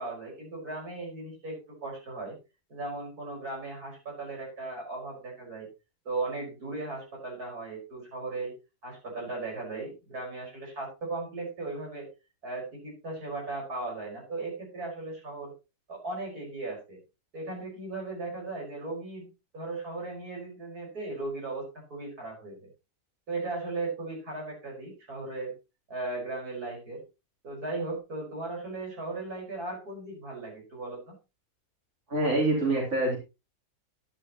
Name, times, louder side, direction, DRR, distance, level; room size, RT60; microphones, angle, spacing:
voice 1, 0.0-2.4 2.7-5.7 6.1-8.5 8.8-12.1 12.4-15.5 15.9-17.0 17.3-21.6 21.9-22.7 23.3-25.5 25.9-27.0 27.4-31.1, right 3 dB, 80° right, -1 dB, 5.7 m, -37 dB
voice 2, 32.1-33.2, right 2 dB, 50° right, -2 dB, 3.9 m, -25 dB
11.5 x 11.0 x 3.0 m, 0.28 s
omnidirectional pair, 1.6 m